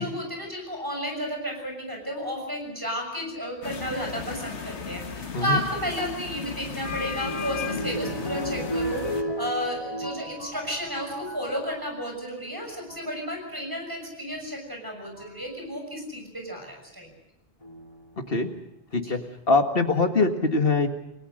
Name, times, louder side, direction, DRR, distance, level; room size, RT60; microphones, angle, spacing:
voice 1, 0.0-17.1 19.0-19.1, equal, 20° right, 2 dB, 6.7 m, -32 dB
sound 1, 3.6-9.2, left 6 dB, 90° left, 1.7 m, -35 dB
sound 2, 6.3-12.0 12.7-13.1 14.4-14.5 15.2-15.5 17.6-18.2 18.9-19.0 19.2-19.3, equal, 30° left, 2.8 m, -34 dB
voice 2, 19.5-20.9, left 3 dB, 60° left, 5 dB, 2.1 m, -22 dB
29.5 x 18.0 x 6.6 m, 0.80 s
omnidirectional pair, 1.1 m